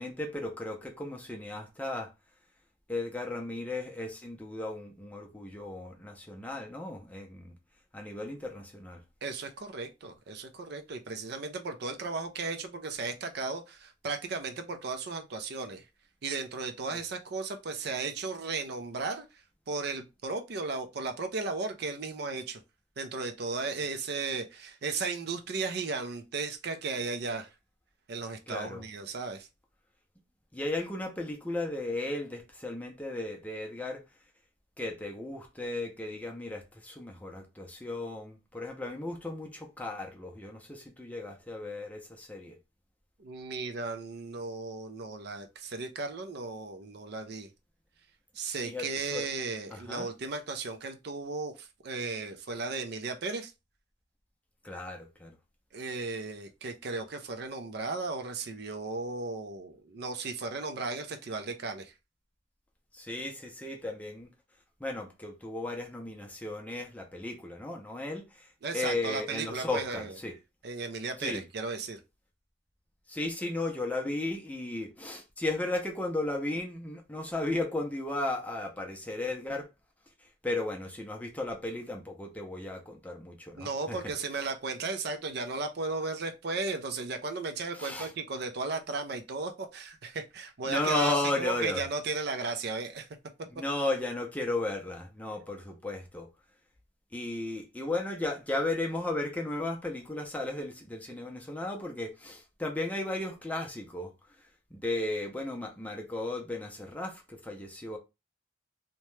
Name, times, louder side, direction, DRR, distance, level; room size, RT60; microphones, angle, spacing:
voice 1, 0.0-2.1 2.9-7.5 7.9-9.0 16.9-17.0 28.5-28.8 30.5-34.0 34.8-42.6 48.6-49.2 49.7-50.1 54.6-55.3 62.9-64.3 64.8-68.5 68.7-70.3 71.2-71.4 73.1-79.7 80.4-84.1 87.7-88.1 90.6-91.8 93.5-96.3 97.1-104.1 104.7-108.0, left 2 dB, 10° left, 0.5 m, -35 dB
voice 2, 9.2-15.8 16.2-19.2 19.7-22.6 23.0-27.5 28.1-29.5 43.2-47.5 48.3-53.5 55.7-61.9 68.6-70.2 70.6-72.0 83.6-93.1, right 3 dB, 60° right, 0.5 m, -35 dB
2.8 x 2.2 x 3.1 m
head